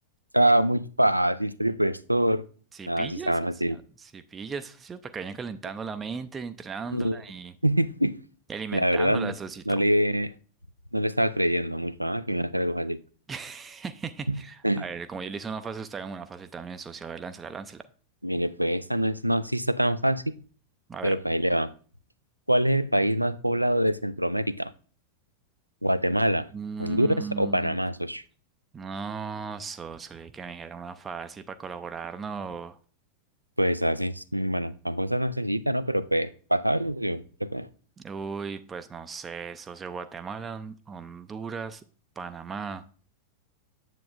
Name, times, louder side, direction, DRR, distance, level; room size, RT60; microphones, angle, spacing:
voice 1, 0.3-2.4 2.9-3.8 6.9-7.2 7.6-8.1 8.7-9.3 9.7-10.3 10.9-13.0 14.3-14.8 18.2-20.3 21.0-21.7 22.5-24.7 25.8-26.5 26.8-28.2 33.6-37.7, right 1 dB, 90° right, 0.3 m, -25 dB
voice 2, 2.7-3.3 3.7-7.5 8.5-9.8 13.3-17.9 20.9-21.2 26.5-27.8 28.7-32.8 38.0-41.8 42.2-42.8, right 5 dB, 20° right, 0.4 m, -37 dB
9.1 x 7.5 x 2.5 m
figure-of-eight pair, 90°, 0 cm